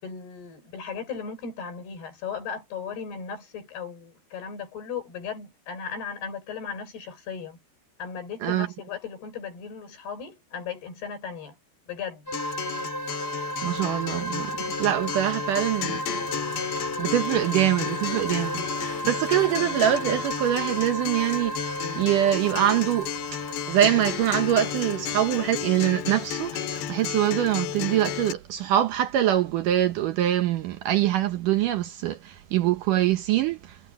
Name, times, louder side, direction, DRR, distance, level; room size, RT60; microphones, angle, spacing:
voice 1, 0.0-7.6 8.0-11.6 11.9-12.3, left 6 dB, 70° left, 7.4 m, -36 dB
Acoustic guitar, 12.3-28.3, left 10 dB, 85° left, 3.8 m, -33 dB
sound 1, 12.3-25.8, right 1 dB, 15° left, 5.2 m, -34 dB
voice 2, 13.6-14.5 14.8-16.0 16.8-23.4 23.7-33.6, right 12 dB, 75° right, 2.0 m, -24 dB
omnidirectional pair, 4.8 m